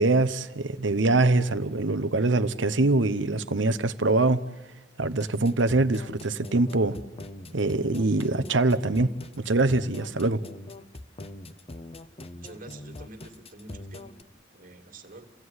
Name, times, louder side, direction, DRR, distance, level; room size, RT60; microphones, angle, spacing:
voice 1, 0.0-4.4 5.0-7.0 7.5-9.1 9.4-10.4, right 2 dB, 70° right, 13 dB, 1.0 m, -23 dB
sound 1, 5.0-14.2, left 1 dB, 30° left, 0.9 m, -42 dB
voice 2, 12.4-14.2 14.5-15.3, right 2 dB, 45° right, 6 dB, 2.4 m, -47 dB
29.5 x 16.0 x 9.7 m, 1.1 s
head